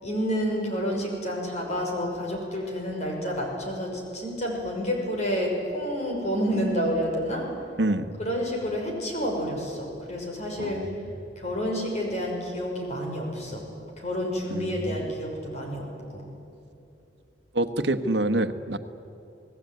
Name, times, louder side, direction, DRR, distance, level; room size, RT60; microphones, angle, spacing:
voice 1, 0.0-7.5 8.2-10.9 11.4-13.6 14.0-16.3, equal, 40° left, 0 dB, 6.0 m, -29 dB
voice 2, 7.8-8.1 10.6-11.1 14.5-15.1 17.5-18.8, right 1 dB, 75° right, 10 dB, 1.3 m, -27 dB
29.0 x 19.5 x 9.3 m, 2.7 s
head